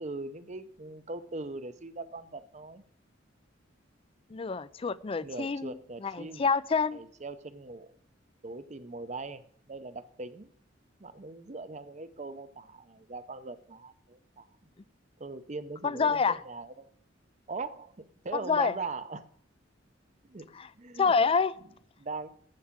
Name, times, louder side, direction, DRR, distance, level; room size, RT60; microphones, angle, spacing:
voice 1, 0.0-2.8 5.2-6.5 6.9-7.9 8.4-9.4 9.7-10.5 11.0-14.5 15.2-16.9 17.5-19.3 20.3-21.1 22.0-22.3, right 3 dB, 35° right, 0.7 m, -40 dB
voice 2, 4.3-5.7 6.0-7.0 15.8-16.4 18.5-18.7 20.5-20.7 21.0-21.5, left 5 dB, 30° left, 0.4 m, -27 dB
14.5 x 4.9 x 7.3 m
head